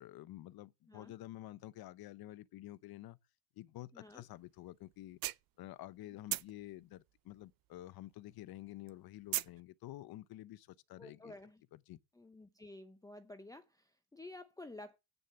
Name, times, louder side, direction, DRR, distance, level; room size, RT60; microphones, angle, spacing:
voice 1, 0.0-3.2 3.6-5.2 5.6-11.3 11.7-12.0, left 15 dB, 50° left, 0.8 m, -50 dB
voice 2, 3.9-4.3 11.0-11.6 12.1-15.0, left 2 dB, 10° left, 0.8 m, -52 dB
sound 1, 4.4-4.5 4.9-6.0 6.3-8.1 8.4-9.6, right 16 dB, 50° right, 0.6 m, -39 dB
8.9 x 6.8 x 7.8 m
cardioid pair, 120°, 47 cm